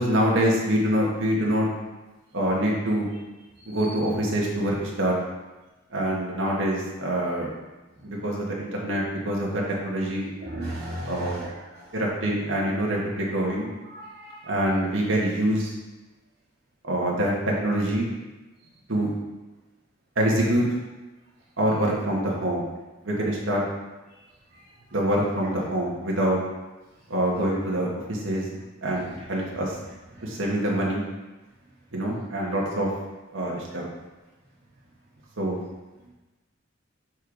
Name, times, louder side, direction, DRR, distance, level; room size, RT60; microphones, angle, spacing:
voice 1, 0.0-1.7 2.3-3.1 3.6-5.1 5.9-7.5 8.0-10.3 11.0-11.4 11.9-13.7 14.5-15.7 16.8-18.1 18.9-19.1 20.1-20.6 21.6-22.6 23.0-23.6 24.9-26.4 27.1-28.4 28.8-29.8 30.2-31.0 31.9-32.9 33.3-33.8 35.4-35.6, right 1 dB, 85° right, -3 dB, 1.7 m, -25 dB
voice 2, 3.6-4.0 10.4-11.5 11.8-11.9 13.9-14.5 30.2-30.3, right 1 dB, 65° right, -10 dB, 1.9 m, -36 dB
6.6 x 4.6 x 4.9 m, 1.1 s
head